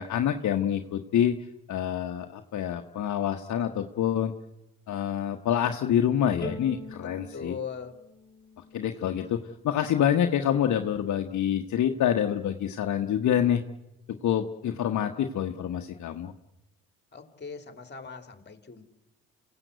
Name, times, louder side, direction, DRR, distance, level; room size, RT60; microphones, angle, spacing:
voice 1, 0.0-4.3 4.9-7.6 8.7-13.6 14.2-16.3, left 9 dB, 60° left, 5 dB, 1.3 m, -27 dB
Bowed string instrument, 6.4-9.6, left 1 dB, 10° left, 3.8 m, -43 dB
voice 2, 7.0-7.9 17.1-18.9, left 6 dB, 30° left, 9 dB, 3.1 m, -40 dB
28.0 x 16.5 x 8.1 m, 0.94 s
supercardioid pair, 65°, 33 cm